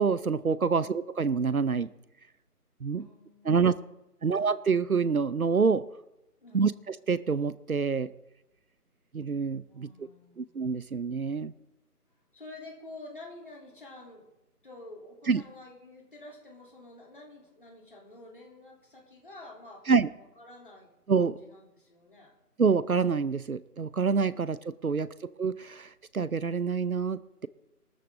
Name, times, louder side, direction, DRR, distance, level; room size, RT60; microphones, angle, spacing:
voice 1, 0.0-1.9 2.8-3.0 3.4-3.7 4.2-5.8 6.5-8.1 9.1-10.1 10.4-11.5 15.3-15.4 19.9-20.1 21.1-21.4 22.6-25.1 25.4-27.5, right 5 dB, 65° right, 16 dB, 0.7 m, -27 dB
voice 2, 2.9-3.9 4.2-4.4 6.4-6.8 9.7-10.5 12.3-14.3 14.6-19.8 20.2-20.9 21.2-22.3, left 2 dB, 35° left, -1 dB, 3.3 m, -49 dB
19.0 x 13.5 x 3.7 m, 0.93 s
figure-of-eight pair, 180°, 47 cm